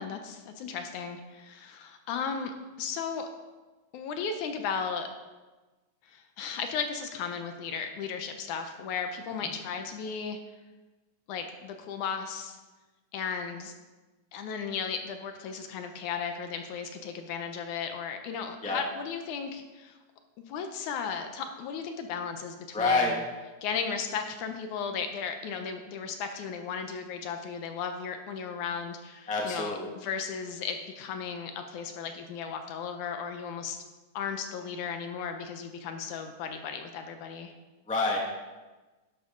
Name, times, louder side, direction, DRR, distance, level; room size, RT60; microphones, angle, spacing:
voice 1, 0.0-2.5 2.8-3.3 3.9-5.1 6.1-10.4 11.3-12.6 13.1-13.7 14.3-20.0 20.4-23.2 23.6-33.8 34.1-37.5, left 6 dB, 75° left, 6 dB, 2.1 m, -35 dB
voice 2, 22.7-23.1 29.3-29.9 37.9-38.2, left 3 dB, 5° left, -2 dB, 0.9 m, -27 dB
12.0 x 10.5 x 3.8 m, 1.2 s
omnidirectional pair, 3.8 m